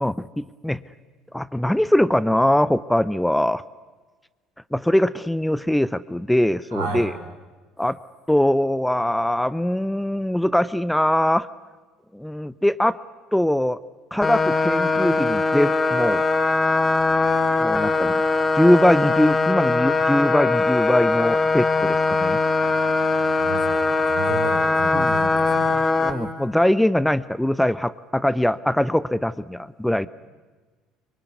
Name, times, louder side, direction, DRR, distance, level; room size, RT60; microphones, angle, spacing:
voice 1, 0.0-0.8 1.3-3.6 4.7-7.1 7.8-8.0 8.3-11.5 12.1-13.0 13.3-13.8 14.1-16.2 17.6-18.1 18.5-22.4 24.9-25.1 26.0-30.1, left 1 dB, 5° left, 17 dB, 0.8 m, -21 dB
voice 2, 6.7-7.1 22.7-22.8 23.3-25.8, right 4 dB, 85° right, 1 dB, 5.5 m, -32 dB
sound 1, 14.2-26.1, left 3 dB, 25° left, 2.8 m, -21 dB
24.5 x 23.5 x 9.5 m, 1.3 s
hypercardioid pair, 65°, 0 cm